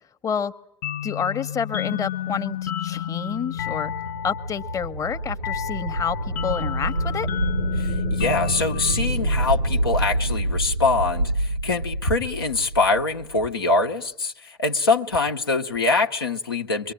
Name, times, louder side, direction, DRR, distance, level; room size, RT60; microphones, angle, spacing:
sound 1, 0.8-10.2, left 11 dB, 55° left, 0.9 m, -31 dB
voice 1, 1.0-3.9 4.2-7.3, left 7 dB, 25° left, 1.0 m, -28 dB
sound 2, 3.2-13.3, right 1 dB, 90° right, 1.0 m, -27 dB
voice 2, 7.8-16.9, left 3 dB, 85° left, 1.1 m, -24 dB
24.0 x 23.5 x 8.9 m
figure-of-eight pair, 75°, 12 cm